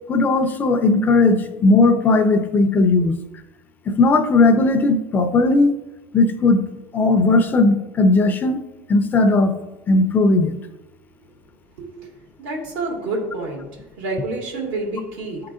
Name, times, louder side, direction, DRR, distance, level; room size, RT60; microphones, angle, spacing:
voice 1, 0.1-3.2 3.9-5.7 6.1-6.6 6.9-8.6 8.9-9.5 9.9-10.5, left 3 dB, 30° left, 7 dB, 0.5 m, -17 dB
voice 2, 12.4-13.6 14.0-15.5, right 2 dB, 85° right, -1 dB, 2.1 m, -28 dB
10.0 x 3.8 x 2.4 m, 0.99 s
cardioid pair, 135°, 7 cm